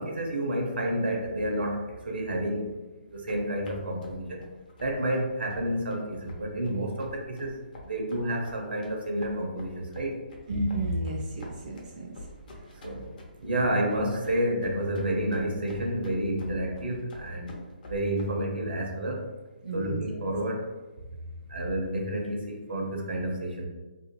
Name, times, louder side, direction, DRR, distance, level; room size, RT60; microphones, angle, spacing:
voice 1, 0.0-2.7 3.1-4.5 4.8-7.6 7.8-10.2 12.8-13.1 13.4-17.5 17.9-19.2 19.7-20.7 21.5-23.7, right 1 dB, 75° right, 0 dB, 0.7 m, -30 dB
sound 1, 3.1-18.2, left 1 dB, 55° left, 0.7 m, -47 dB
voice 2, 10.5-12.1 12.7-12.8 19.6-20.0, right 1 dB, 45° right, -2 dB, 0.4 m, -31 dB
2.6 x 2.5 x 2.6 m, 1.2 s
figure-of-eight pair, 145°, 5 cm